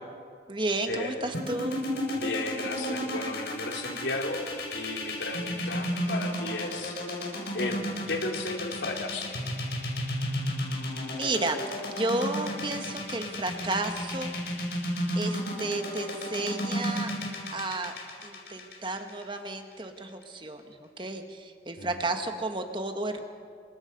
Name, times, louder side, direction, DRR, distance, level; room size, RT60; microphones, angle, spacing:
voice 1, 0.5-1.9 11.1-11.6 11.9-14.3 15.2-17.1 17.5-17.9 18.2-23.2, right 2 dB, 25° right, 5 dB, 1.6 m, -32 dB
sound 1, 1.3-19.5, equal, 65° left, 5.6 m, -32 dB
voice 2, 2.1-4.4 4.7-7.0 7.5-9.3 21.8-22.1, left 2 dB, 90° left, 2 dB, 3.4 m, -34 dB
29.0 x 24.0 x 5.4 m, 2.2 s
head